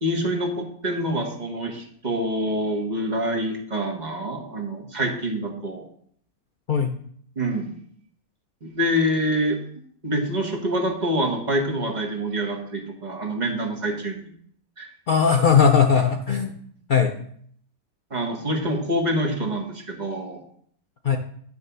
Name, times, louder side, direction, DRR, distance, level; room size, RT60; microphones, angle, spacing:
voice 1, 0.0-5.8 7.4-7.7 8.6-9.6 10.0-14.3 14.8-14.9 18.1-20.4, equal, 30° right, 1 dB, 1.2 m, -26 dB
voice 2, 15.1-16.6 16.9-17.1 21.0-21.2, left 6 dB, 90° left, 3 dB, 0.4 m, -18 dB
9.7 x 3.3 x 6.7 m, 0.62 s
omnidirectional pair, 1.6 m